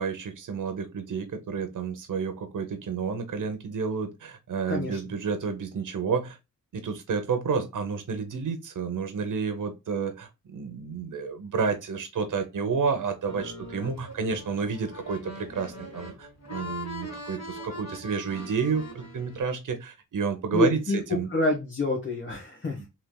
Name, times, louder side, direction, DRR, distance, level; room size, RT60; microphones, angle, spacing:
voice 1, 0.0-6.4 6.7-21.3 22.8-22.9, right 5 dB, 70° right, 0.8 m, -30 dB
voice 2, 4.7-5.0 20.5-21.0 21.3-22.9, left 2 dB, 35° left, 1.2 m, -27 dB
road gypsies accordion, 13.3-19.4, equal, 55° left, 1.9 m, -41 dB
3.3 x 2.9 x 2.2 m
wide cardioid pair, 90°, 33 cm